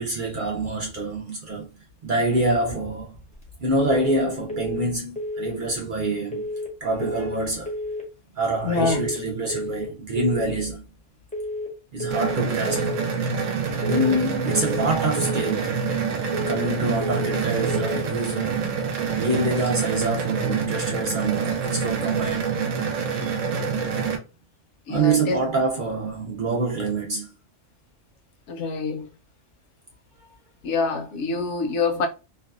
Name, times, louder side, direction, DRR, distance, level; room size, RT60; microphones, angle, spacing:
voice 1, 0.0-1.7 2.0-3.1 3.6-6.4 6.8-7.7 8.3-10.8 11.9-13.0 13.9-15.8 16.3-18.6 19.1-22.6 24.0-24.2 24.9-27.3, right 2 dB, 55° right, 0.6 m, -26 dB
sound 1, 3.8-4.2 4.5-4.9 5.2-5.6 6.3-6.7 7.0-7.4 7.7-8.1 8.8-9.2 9.5-9.9 10.2-10.6 11.3-11.7 12.0-12.4 12.7-13.1 13.8-14.2 14.5-14.9 15.2-15.6 16.3-16.7 17.0-17.4 17.7-18.1, left 1 dB, 10° left, 0.5 m, -31 dB
voice 2, 8.6-9.1 24.9-25.4 28.5-29.1 30.6-32.1, left 4 dB, 70° left, 0.9 m, -25 dB
sound 2, 12.1-24.2, right 5 dB, 85° right, 1.0 m, -26 dB
2.6 x 2.2 x 2.3 m
omnidirectional pair, 1.3 m